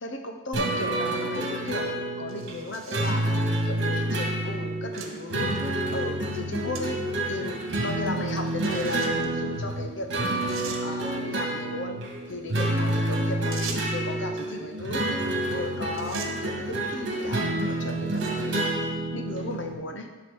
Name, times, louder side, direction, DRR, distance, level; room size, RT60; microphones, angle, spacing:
voice 1, 0.0-7.0 7.3-10.1 10.8-12.0 12.3-15.2 15.4-20.1, left 2 dB, 60° left, 5 dB, 0.9 m, -36 dB
sound 1, 0.5-19.7, right 1 dB, 55° right, 1.9 m, -28 dB
sound 2, 2.3-3.2 4.0-4.1 5.0-5.1 5.6-5.7 6.7-6.9 7.2-7.3 8.6-9.3 10.0-10.1 10.5-10.8 13.5-14.0 15.4-15.6 15.9-16.3 17.1-17.4 18.0-18.5, right 6 dB, 80° right, 1.2 m, -40 dB
10.5 x 4.1 x 7.0 m, 1.3 s
head